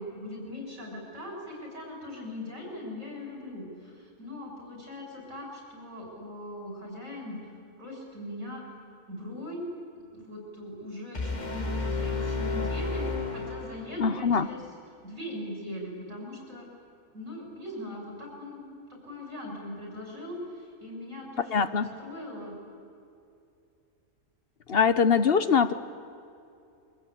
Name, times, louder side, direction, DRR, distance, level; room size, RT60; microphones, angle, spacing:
voice 1, 0.0-7.4 7.8-8.6 9.1-9.6 10.1-14.6 15.0-16.7 17.1-22.6, left 1 dB, 55° right, -2 dB, 6.6 m, -40 dB
sound 1, 11.1-14.2, left 3 dB, 30° left, 1.8 m, -31 dB
voice 2, 14.0-14.5 21.5-21.9 24.7-25.7, left 6 dB, 45° left, 12 dB, 1.0 m, -23 dB
27.0 x 23.0 x 8.6 m, 2.6 s
omnidirectional pair, 1.5 m